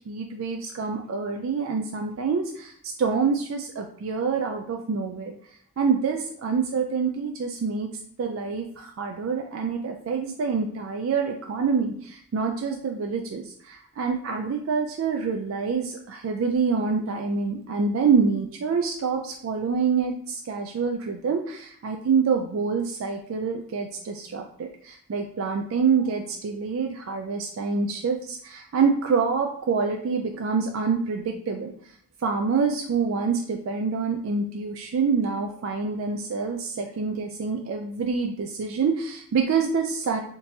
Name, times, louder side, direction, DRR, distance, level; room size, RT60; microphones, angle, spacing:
voice 1, 0.1-5.3 5.8-7.9 8.2-31.7 32.2-40.2, right 5 dB, 65° right, 3 dB, 0.3 m, -26 dB
3.6 x 2.6 x 2.8 m, 0.62 s
head